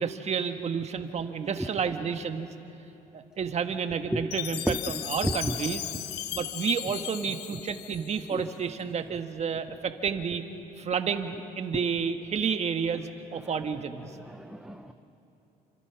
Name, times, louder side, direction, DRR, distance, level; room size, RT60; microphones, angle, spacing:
voice 1, 0.0-2.5 3.1-5.8 6.3-10.4 10.8-14.1, right 6 dB, 40° right, 7 dB, 1.7 m, -30 dB
Chime, 4.3-8.6, left 13 dB, 85° left, 0.9 m, -36 dB
voice 2, 5.2-5.6 8.3-8.5 13.4-13.5 14.0-14.9, right 1 dB, 5° right, 7 dB, 0.9 m, -32 dB
29.0 x 25.5 x 6.0 m, 3.0 s
cardioid pair, 110°, 17 cm